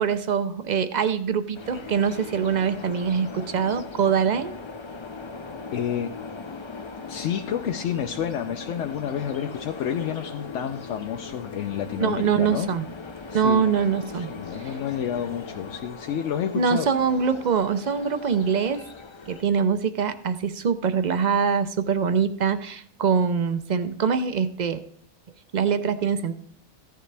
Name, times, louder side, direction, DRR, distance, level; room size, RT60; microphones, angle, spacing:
voice 1, 0.0-4.5 12.0-12.8 13.3-14.3 14.6-14.7 16.5-18.8 19.3-24.8 25.5-26.4, right 6 dB, 55° right, 11 dB, 0.5 m, -24 dB
sound 1, 1.5-19.4, left 4 dB, 45° left, 0.3 m, -39 dB
voice 2, 5.7-6.2 7.1-12.7 13.3-13.7 14.1-16.9, left 9 dB, 65° left, 4 dB, 0.9 m, -29 dB
15.0 x 10.0 x 3.3 m, 0.65 s
omnidirectional pair, 1.5 m